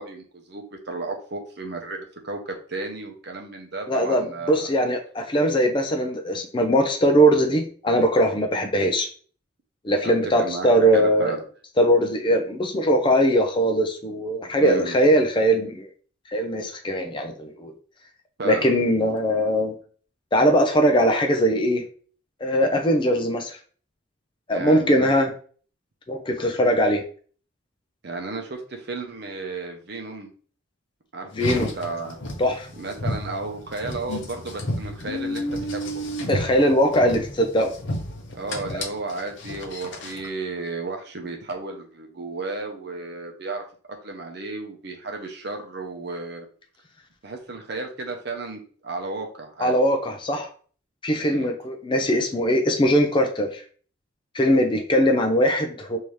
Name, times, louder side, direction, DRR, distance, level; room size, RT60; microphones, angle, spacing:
voice 1, 0.0-4.7 10.0-10.1 10.4-10.7 10.9-11.4 14.6-15.0 18.4-18.8 19.1-19.4 24.5-25.1 28.0-30.3 31.1-32.2 32.8-35.9 38.3-43.6 44.0-46.5 47.2-49.7 51.2-51.5, right 3 dB, 50° right, 3 dB, 0.7 m, -33 dB
voice 2, 3.9-9.1 9.8-11.3 11.8-15.9 16.3-17.7 18.4-19.7 20.3-21.8 22.4-23.6 24.5-25.3 26.1-27.0 31.3-31.7 32.4-32.7 36.3-37.7 38.7-38.8 49.6-50.5 51.0-53.6 54.3-56.0, equal, 25° left, 4 dB, 0.4 m, -21 dB
Car, 31.3-40.3, left 1 dB, 55° left, 0.7 m, -32 dB
3.5 x 2.7 x 3.1 m, 0.43 s
head